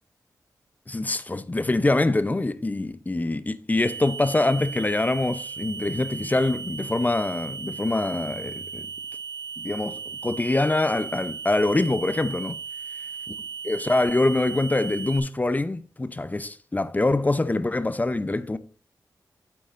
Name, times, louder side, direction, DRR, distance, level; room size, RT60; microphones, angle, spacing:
voice 1, 0.9-8.9 9.6-12.6 13.6-18.6, left 2 dB, 25° left, 0.6 m, -24 dB
sound 1, 3.8-15.2, right 6 dB, 50° left, 4.0 m, -36 dB
11.5 x 8.4 x 2.5 m
cardioid pair, 60°, 7 cm